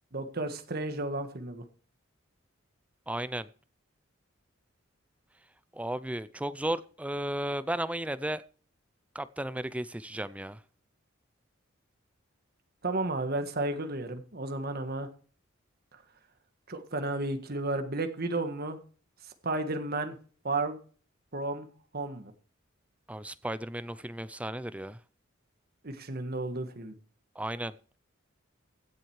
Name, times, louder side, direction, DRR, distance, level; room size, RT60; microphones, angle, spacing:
voice 1, 0.1-1.6 12.8-15.1 15.9-16.0 16.7-18.8 19.2-20.2 20.4-20.8 21.3-21.7 21.9-22.3 25.8-26.9, right 2 dB, 50° right, 1.6 m, -33 dB
voice 2, 3.1-3.5 5.7-8.4 9.1-10.6 23.1-25.0 27.3-27.7, right 1 dB, 5° right, 0.5 m, -34 dB
16.0 x 7.6 x 4.8 m
head